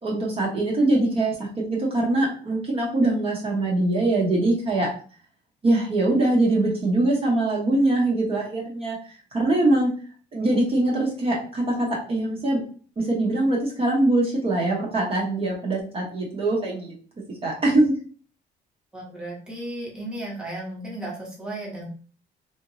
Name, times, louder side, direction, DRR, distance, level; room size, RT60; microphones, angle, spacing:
voice 1, 0.0-4.9 5.6-9.0 9.3-9.9 10.3-12.6 13.0-17.9, right 2 dB, 30° right, -3 dB, 1.0 m, -23 dB
voice 2, 18.9-21.9, right 1 dB, 5° right, -4 dB, 1.1 m, -34 dB
3.3 x 3.0 x 2.7 m, 0.41 s
cardioid pair, 145°, 18 cm